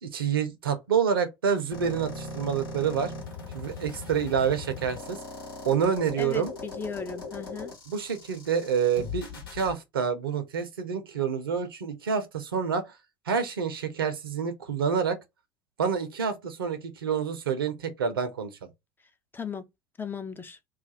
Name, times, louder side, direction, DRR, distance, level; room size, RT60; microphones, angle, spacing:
voice 1, 0.0-3.1 3.5-5.2 5.6-6.5 7.9-12.9 13.3-15.2 15.8-18.5, right 7 dB, 80° right, 0.6 m, -28 dB
sound 1, 1.7-9.7, left 3 dB, 75° left, 1.1 m, -39 dB
voice 2, 6.2-7.7 19.3-19.7 20.0-20.6, left 5 dB, 15° left, 0.5 m, -36 dB
2.4 x 2.3 x 3.9 m
figure-of-eight pair, 70°, 12 cm